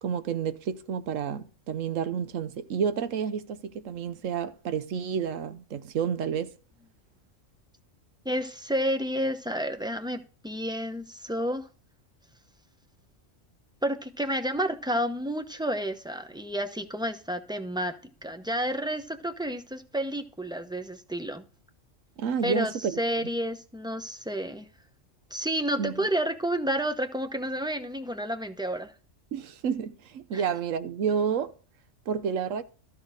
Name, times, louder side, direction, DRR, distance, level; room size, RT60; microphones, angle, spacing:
voice 1, 0.0-6.5 22.2-23.0 25.8-26.1 29.3-31.5 32.1-32.6, right 7 dB, 85° right, 1.1 m, -30 dB
voice 2, 8.2-11.7 13.8-18.0 18.2-21.5 22.4-24.7 25.3-28.9 30.3-30.5, equal, 5° right, 0.6 m, -30 dB
13.0 x 6.5 x 4.9 m
omnidirectional pair, 1.3 m